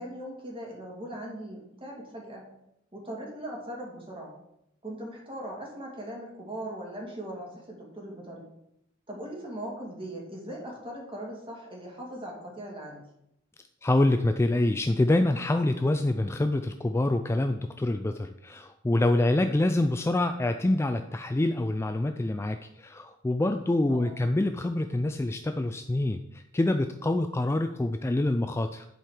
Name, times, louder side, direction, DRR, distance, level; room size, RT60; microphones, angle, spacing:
voice 1, 0.0-2.5 2.9-4.3 4.8-8.5 9.1-13.0 23.9-24.2, right 1 dB, 25° right, -2 dB, 2.3 m, -39 dB
voice 2, 13.8-28.9, left 1 dB, 15° left, 7 dB, 0.3 m, -26 dB
10.5 x 4.6 x 5.0 m, 0.80 s
head